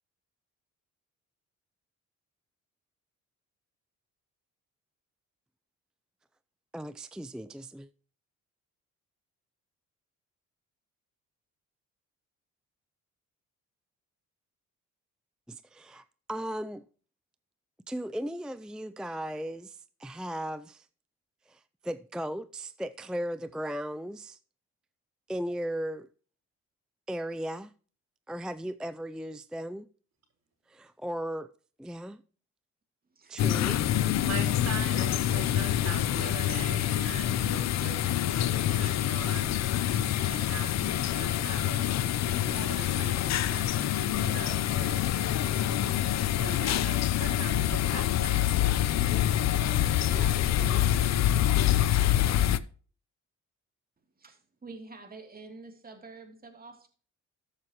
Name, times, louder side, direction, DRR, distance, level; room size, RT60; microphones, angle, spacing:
voice 1, 6.7-7.9 15.5-16.8 17.9-20.9 21.5-24.4 25.3-26.1 27.1-27.7 28.3-29.9 30.7-31.5 31.8-32.2 33.3-33.8, equal, 5° right, 0.4 m, -36 dB
sound 1, 33.4-52.6, left 12 dB, 60° left, 0.7 m, -26 dB
voice 2, 34.2-38.0 38.3-39.6 39.9-45.8 46.4-48.3 49.0-49.2 49.5-51.3, right 5 dB, 60° right, 4.2 m, -43 dB
voice 3, 54.2-56.9, right 3 dB, 30° right, 2.8 m, -47 dB
14.0 x 7.4 x 3.0 m
cardioid pair, 90°, 30 cm